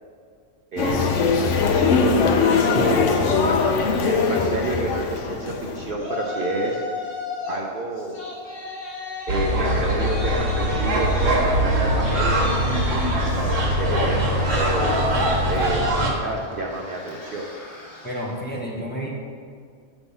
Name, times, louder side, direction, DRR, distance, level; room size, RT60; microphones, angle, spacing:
voice 1, 0.7-3.8 4.0-6.8 7.5-8.2 9.3-12.3 13.6-15.1 15.5-17.5, right 2 dB, 55° right, -1 dB, 0.7 m, -29 dB
sound 1, 0.8-5.9, left 5 dB, 75° left, 0.9 m, -21 dB
Yell, 6.0-7.6 8.0-18.4, left 3 dB, 50° left, 1.4 m, -36 dB
sound 2, 9.3-16.1, equal, 80° right, 1.4 m, -22 dB
voice 2, 18.0-19.1, equal, 10° left, -3 dB, 0.8 m, -30 dB
8.0 x 3.5 x 5.5 m, 2.1 s
omnidirectional pair, 1.3 m